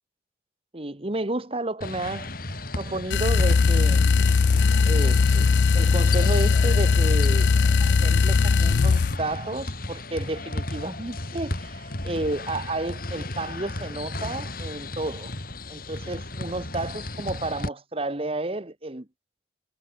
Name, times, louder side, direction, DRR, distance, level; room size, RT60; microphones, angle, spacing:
voice 1, 0.7-2.3 2.8-4.1 4.8-5.5 5.7-7.5 7.8-15.3 15.7-19.1, right 2 dB, 30° right, 1.3 m, -31 dB
sound 1, 1.8-17.7, left 2 dB, 55° left, 3.6 m, -34 dB
sound 2, 3.1-9.2, left 4 dB, 75° left, 0.5 m, -19 dB
head